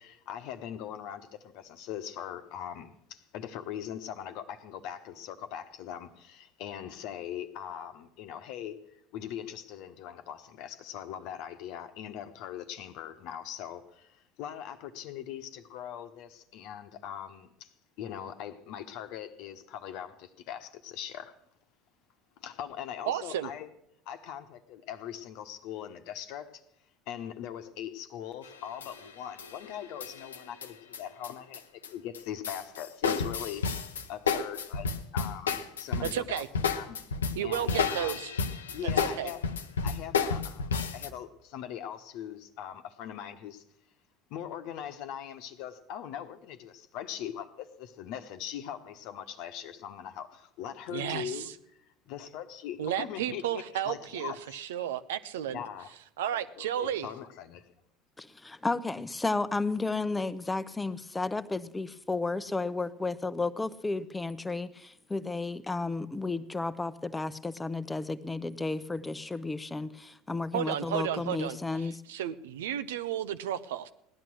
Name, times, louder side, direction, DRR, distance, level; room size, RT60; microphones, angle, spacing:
voice 1, 0.0-8.8 9.1-17.7 18.0-21.3 22.4-23.7 24.1-26.6 27.1-30.5 30.9-33.6 34.1-34.9 35.1-36.4 36.7-37.0 37.4-38.2 38.7-39.4 39.8-43.6 44.3-51.5 52.0-54.6 55.5-55.9 56.3-57.7, left 10 dB, 60° left, 1.1 m, -41 dB
voice 2, 23.1-23.5 34.3-34.4 36.0-36.5 37.4-38.3 38.8-39.3 50.9-51.5 52.8-55.6 56.2-57.1 70.5-73.9, right 10 dB, 75° right, 0.7 m, -33 dB
sound 1, 28.4-29.1 29.4-31.9 32.1-41.1, left 5 dB, 85° left, 0.8 m, -31 dB
voice 3, 58.2-72.0, left 3 dB, 15° left, 0.8 m, -33 dB
17.0 x 11.0 x 6.3 m
hypercardioid pair, 70°, 0 cm